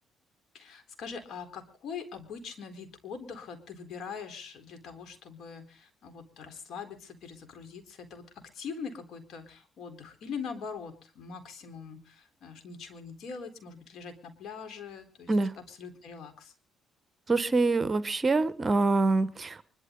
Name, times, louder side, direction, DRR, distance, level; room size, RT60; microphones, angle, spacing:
voice 1, 0.5-15.3 15.7-16.5, left 6 dB, 65° left, 7 dB, 4.1 m, -42 dB
voice 2, 17.3-19.6, right 3 dB, 30° right, 14 dB, 1.1 m, -25 dB
24.5 x 12.5 x 3.9 m, 0.37 s
cardioid pair, 90°, 0 cm